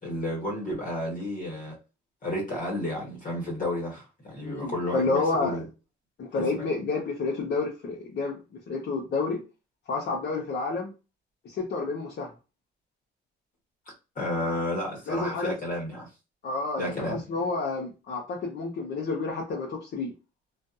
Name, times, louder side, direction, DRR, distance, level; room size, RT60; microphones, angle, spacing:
voice 1, 0.0-1.8 2.2-5.6 6.3-6.6 14.1-16.1 16.8-17.2, left 1 dB, 45° left, 1.2 m, -32 dB
voice 2, 4.4-5.6 6.2-8.4 8.7-9.4 9.9-10.9 11.4-12.3 15.1-15.5 16.4-20.1, left 3 dB, 60° left, 0.8 m, -29 dB
2.5 x 2.3 x 2.5 m
cardioid pair, 90°, 20 cm